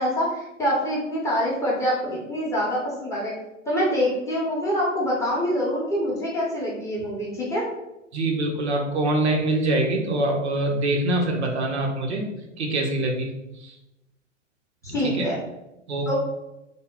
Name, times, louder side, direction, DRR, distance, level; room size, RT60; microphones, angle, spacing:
voice 1, 0.0-3.3 3.7-7.6 14.8-15.4 16.1-16.2, equal, 10° left, -6 dB, 0.7 m, -25 dB
voice 2, 8.1-12.3 12.6-13.3 15.1-15.3 15.9-16.1, right 2 dB, 60° right, 1 dB, 0.8 m, -24 dB
3.4 x 2.1 x 3.7 m, 0.91 s
figure-of-eight pair, 110°, 38 cm